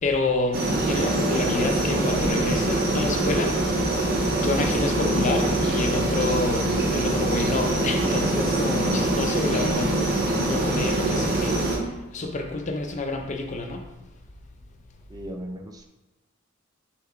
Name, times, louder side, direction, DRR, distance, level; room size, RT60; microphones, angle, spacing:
voice 1, 0.0-3.5 4.4-9.9 10.4-11.6 12.1-13.8, left 3 dB, 35° left, 4 dB, 0.5 m, -28 dB
sound 1, 0.5-11.8, right 1 dB, 50° right, 0.9 m, -24 dB
voice 2, 15.1-15.9, equal, 20° right, 3 dB, 0.4 m, -37 dB
4.4 x 3.4 x 3.6 m, 1.1 s
head